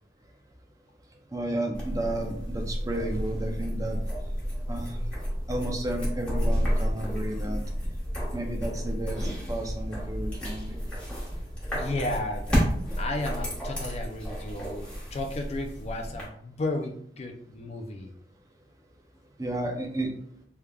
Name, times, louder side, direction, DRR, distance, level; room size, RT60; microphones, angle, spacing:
voice 1, 1.3-4.0 4.7-5.0 5.5-7.6 8.3-10.8 19.4-20.1, right 1 dB, 20° right, 2 dB, 0.5 m, -32 dB
sound 1, 1.7-16.2, equal, 5° left, 1.1 m, -31 dB
voice 2, 11.7-12.6 13.0-18.1, left 2 dB, 35° left, 4 dB, 0.4 m, -33 dB
3.5 x 3.3 x 2.2 m, 0.64 s
head